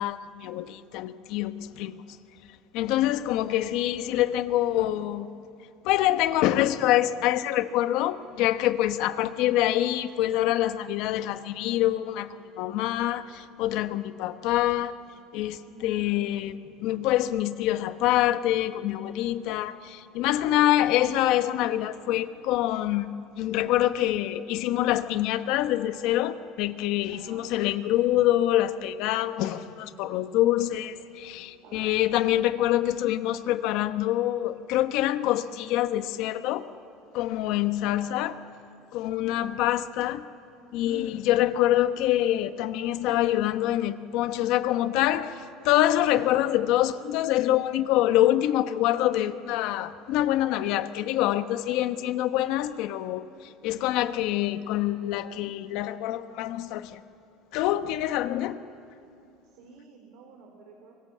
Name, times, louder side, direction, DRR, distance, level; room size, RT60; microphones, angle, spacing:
voice 1, 0.0-2.0 2.7-5.3 5.8-14.9 15.3-23.1 23.4-36.7 37.1-38.3 38.9-40.3 40.7-57.0 57.5-58.6, left 13 dB, 70° left, 1.1 m, -25 dB
voice 2, 2.9-3.2 9.2-9.3 15.7-16.0 19.6-19.7 20.6-20.8 27.1-27.5 31.6-32.0 37.8-38.2 39.3-39.6 59.4-60.9, right 4 dB, 75° right, 3.2 m, -50 dB
25.5 x 24.0 x 7.4 m
cardioid pair, 125°, 0 cm